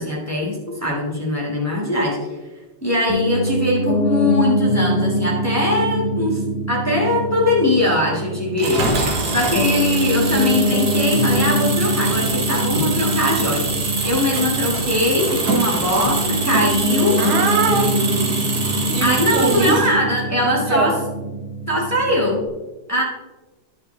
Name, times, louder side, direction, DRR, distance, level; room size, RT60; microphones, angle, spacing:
voice 1, 0.0-2.2 2.8-6.4 6.7-8.9 9.3-13.6 14.0-17.2 19.0-20.9 21.7-22.4 22.9-23.0, left 1 dB, 10° left, -3 dB, 1.4 m, -21 dB
Piano, 3.1-22.5, equal, 60° left, 1.4 m, -24 dB
Engine, 8.6-20.2, right 3 dB, 55° right, 1.6 m, -24 dB
voice 2, 17.2-19.8 20.7-20.9, right 5 dB, 85° right, 5 dB, 1.8 m, -23 dB
12.5 x 5.1 x 3.2 m, 1.2 s
omnidirectional pair, 2.2 m